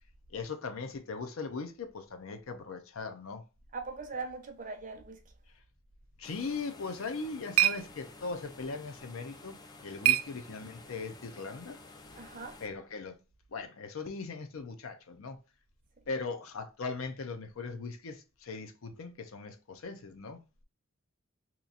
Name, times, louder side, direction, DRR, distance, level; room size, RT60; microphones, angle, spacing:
voice 1, 0.3-3.4 6.2-11.8 12.6-13.2 13.5-15.4 16.1-20.4, left 4 dB, 65° left, 0.6 m, -39 dB
voice 2, 3.7-5.2 10.0-10.1 12.1-12.6, right 4 dB, 40° right, 0.6 m, -40 dB
sound 1, 6.2-12.7, left 3 dB, 20° left, 0.3 m, -52 dB
sound 2, 6.8-11.0, right 13 dB, 70° right, 0.3 m, -32 dB
2.9 x 2.5 x 3.8 m
head